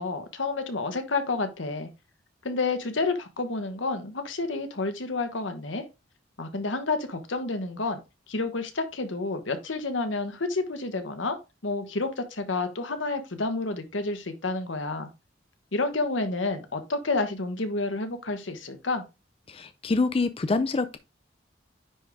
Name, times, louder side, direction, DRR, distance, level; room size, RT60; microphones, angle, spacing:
voice 1, 0.0-1.9 2.4-5.8 6.4-8.0 8.3-11.4 11.6-15.1 15.7-19.0, left 3 dB, 85° left, 1.2 m, -29 dB
voice 2, 19.5-21.0, left 3 dB, 30° left, 0.4 m, -26 dB
9.8 x 3.8 x 3.5 m
head